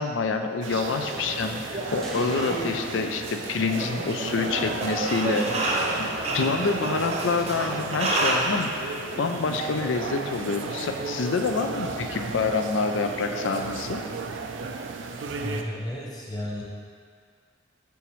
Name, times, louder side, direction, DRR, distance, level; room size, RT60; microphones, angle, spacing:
voice 1, 0.0-6.1 6.3-14.0, left 4 dB, 80° left, 6 dB, 0.4 m, -27 dB
sound 1, 0.6-15.6, right 4 dB, 80° right, 0.4 m, -34 dB
sound 2, 0.9-8.4, right 2 dB, 35° right, 0.7 m, -30 dB
sound 3, 2.0-4.3, left 1 dB, ahead, 0.6 m, -41 dB
voice 2, 15.1-16.6, left 1 dB, 20° left, -4 dB, 1.0 m, -34 dB
7.0 x 5.9 x 3.1 m, 2.1 s
head